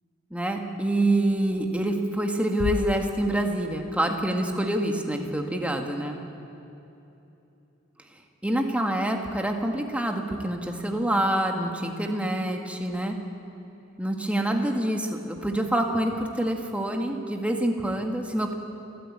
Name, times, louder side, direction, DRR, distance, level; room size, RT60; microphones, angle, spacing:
voice 1, 0.3-6.2 8.4-13.2 14.0-18.5, right 1 dB, 5° right, 2 dB, 1.7 m, -26 dB
sound 1, 2.6-4.0, left 2 dB, 80° left, 0.6 m, -34 dB
29.0 x 13.5 x 8.6 m, 2.9 s
head